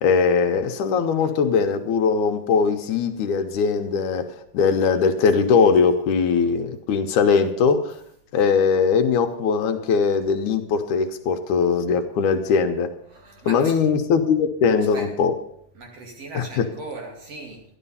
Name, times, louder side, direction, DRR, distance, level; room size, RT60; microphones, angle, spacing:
voice 1, 0.0-8.0 8.3-12.9 13.5-15.3 16.3-16.6, left 5 dB, 75° left, 2.3 m, -20 dB
voice 2, 13.1-13.8 14.9-15.1 15.7-17.6, right 3 dB, 50° right, 3.2 m, -38 dB
13.0 x 11.0 x 5.6 m
omnidirectional pair, 3.7 m